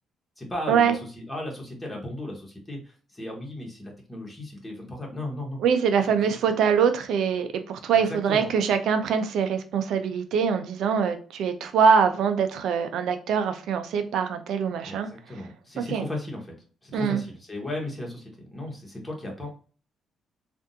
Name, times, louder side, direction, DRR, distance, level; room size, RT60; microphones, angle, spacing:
voice 1, 0.4-5.6 6.2-6.5 7.9-8.5 14.8-16.5 16.8-19.5, left 1 dB, 10° left, -1 dB, 1.4 m, -36 dB
voice 2, 5.6-15.1 15.9-16.1 16.9-17.2, right 6 dB, 80° right, 8 dB, 0.5 m, -23 dB
3.5 x 2.6 x 2.6 m, 0.40 s
cardioid pair, 90°, 0 cm